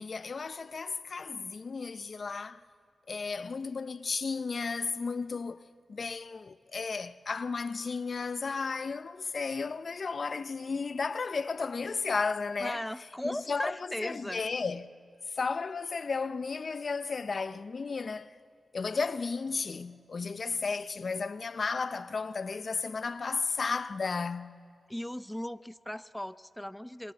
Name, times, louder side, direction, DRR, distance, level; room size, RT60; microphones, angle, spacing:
voice 1, 0.0-2.6 3.1-5.6 5.9-12.8 13.2-13.8 14.0-14.9 15.3-18.4 18.7-24.5, left 4 dB, 60° left, 0.7 m, -34 dB
voice 2, 12.6-14.4 24.9-27.1, left 1 dB, 10° left, 0.6 m, -37 dB
26.5 x 22.0 x 8.0 m
cardioid pair, 45°, 0 cm